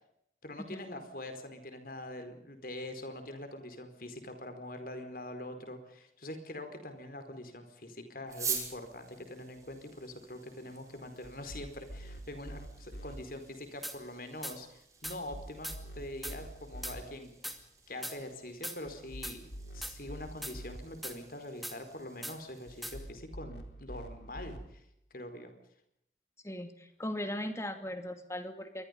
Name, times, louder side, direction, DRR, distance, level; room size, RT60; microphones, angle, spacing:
voice 1, 0.4-17.3 17.9-19.5 19.7-24.8 25.1-25.5, left 1 dB, 55° left, 8 dB, 4.7 m, -44 dB
sound 1, 8.3-23.0, right 6 dB, 20° right, 6.4 m, -47 dB
sound 2, 11.2-13.2 15.0-17.0 18.9-20.8 22.7-24.6, right 1 dB, 75° left, 4.4 m, -46 dB
sound 3, 13.8-14.0 14.4-14.6 15.0-15.2 15.6-15.8 16.2-16.4 16.8-17.0 17.4-17.6 18.0-18.2 18.6-18.8 19.2-19.4 19.8-20.0 20.4-20.6 21.0-21.2 21.6-21.8 22.2-22.4 22.8-23.0, equal, ahead, 2.4 m, -40 dB
voice 2, 26.4-28.8, left 1 dB, 15° left, 7 dB, 2.5 m, -38 dB
28.0 x 23.5 x 5.4 m, 0.76 s
head